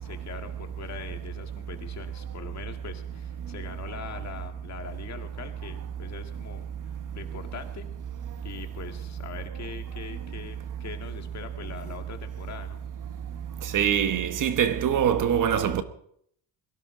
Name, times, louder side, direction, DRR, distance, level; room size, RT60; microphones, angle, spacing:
voice 1, 0.0-7.9 8.4-12.8, left 6 dB, 40° left, 1.9 m, -42 dB
voice 2, 13.7-15.8, right 9 dB, 50° right, 1.2 m, -23 dB
22.0 x 16.5 x 3.8 m
cardioid pair, 140°, 41 cm